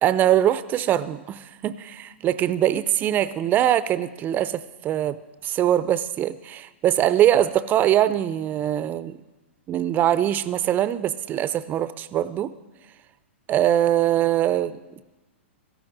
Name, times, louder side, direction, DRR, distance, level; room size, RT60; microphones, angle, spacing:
voice 1, 0.0-5.2 5.4-9.2 9.7-12.5 13.5-15.0, right 11 dB, 25° right, 15 dB, 0.6 m, -22 dB
17.0 x 14.0 x 3.9 m, 1.1 s
hypercardioid pair, 115°, 7 cm